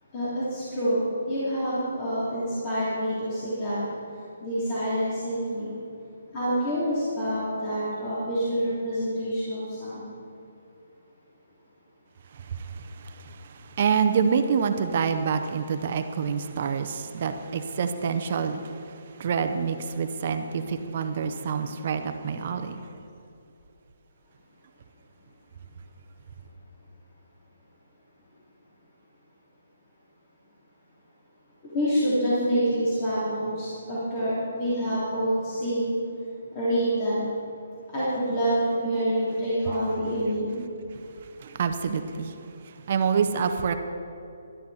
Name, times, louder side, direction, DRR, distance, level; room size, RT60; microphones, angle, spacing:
voice 1, 0.1-3.8 4.4-5.7 6.3-10.0 31.7-35.9 36.5-37.2 37.9-40.6, equal, 25° left, -10 dB, 3.3 m, -27 dB
voice 2, 12.5-18.8 19.2-22.8 41.4-42.4 42.9-43.7, right 6 dB, 45° right, 7 dB, 0.8 m, -27 dB
12.5 x 12.0 x 4.3 m, 2.7 s
hypercardioid pair, 165°, 0 cm